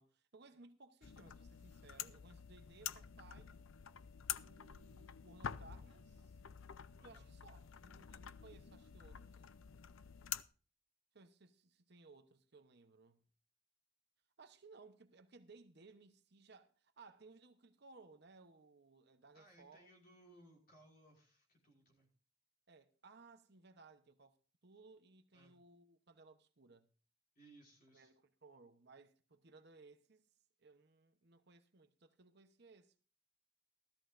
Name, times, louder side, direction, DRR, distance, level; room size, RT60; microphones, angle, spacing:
voice 1, 0.0-3.6 4.4-6.4 7.0-9.4 11.1-13.3 14.4-19.9 20.2-20.4 22.7-24.4 24.6-26.9 27.9-30.3 30.6-33.0, right 3 dB, 55° right, 0.9 m, -62 dB
sound 1, 1.0-10.4, left 9 dB, 80° left, 0.5 m, -48 dB
voice 2, 7.0-7.3 19.3-22.1 25.3-25.6 27.4-28.1, right 2 dB, 45° left, 5.3 m, -64 dB
16.5 x 13.5 x 2.6 m
head